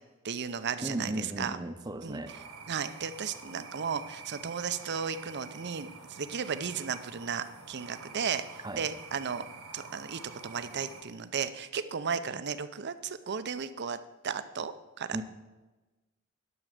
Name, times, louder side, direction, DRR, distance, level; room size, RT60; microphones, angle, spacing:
voice 1, 0.2-1.6 2.0-2.2 2.7-8.4 8.8-9.5 9.7-14.0 14.2-15.2, right 6 dB, 55° right, 12 dB, 0.6 m, -34 dB
voice 2, 0.8-2.4 8.6-8.9 15.1-15.2, right 1 dB, 20° right, 9 dB, 0.7 m, -36 dB
sound 1, 2.3-11.0, right 4 dB, 75° right, 1.7 m, -48 dB
11.0 x 6.4 x 6.5 m, 1.2 s
head